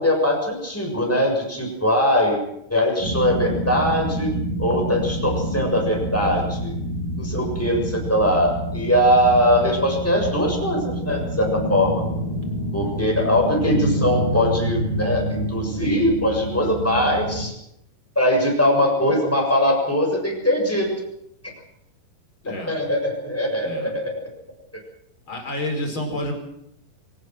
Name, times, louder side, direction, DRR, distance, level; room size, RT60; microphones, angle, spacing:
voice 1, 0.0-2.4 2.7-4.3 4.6-6.8 7.2-11.9 12.7-17.5 18.1-20.9 21.4-21.5 22.7-24.2, equal, 5° left, 0 dB, 6.8 m, -21 dB
sound 1, 3.0-17.5, equal, 70° right, 8.9 m, -27 dB
voice 2, 22.4-22.8 23.6-23.9 25.3-26.3, left 1 dB, 30° left, 3 dB, 5.4 m, -29 dB
24.0 x 19.0 x 6.3 m, 0.79 s
omnidirectional pair, 4.3 m